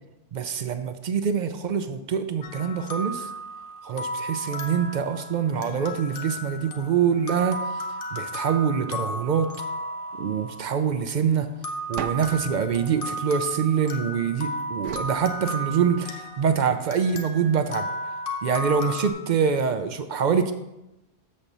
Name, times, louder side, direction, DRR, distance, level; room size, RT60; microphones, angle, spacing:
voice 1, 0.3-3.3 3.8-7.8 8.1-9.5 10.2-11.5 11.9-17.9 18.4-20.5, right 7 dB, 60° right, 9 dB, 0.4 m, -25 dB
sound 1, 2.4-11.0 11.6-19.1, equal, 50° left, 1.0 m, -34 dB
sound 2, 12.0-14.2 14.8-16.2, right 8 dB, 75° right, 0.9 m, -39 dB
7.2 x 4.3 x 6.6 m, 0.94 s
omnidirectional pair, 1.3 m